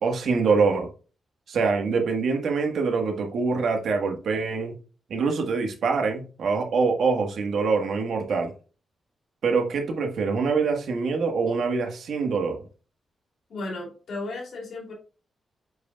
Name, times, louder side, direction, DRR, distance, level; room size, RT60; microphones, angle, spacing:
voice 1, 0.0-0.9 1.5-4.7 5.1-8.5 9.4-12.6, right 4 dB, 70° right, 1.4 m, -24 dB
voice 2, 13.5-14.9, left 2 dB, 60° left, 2.8 m, -34 dB
8.0 x 5.0 x 2.3 m
wide cardioid pair, 165°, 0 cm